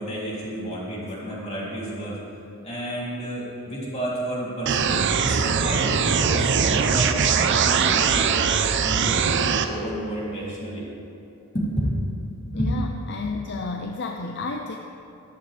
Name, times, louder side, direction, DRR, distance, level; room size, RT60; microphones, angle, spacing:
voice 1, 0.0-2.2 2.6-8.4 8.8-9.4 9.7-10.8 11.5-12.0 12.5-12.7 13.1-13.2, right 1 dB, 30° left, -6 dB, 3.0 m, -30 dB
sound 1, 4.7-9.7, right 6 dB, 60° right, 0.6 m, -21 dB
voice 2, 12.5-14.8, left 3 dB, 55° left, 3 dB, 0.6 m, -31 dB
13.5 x 12.0 x 3.4 m, 2.8 s
head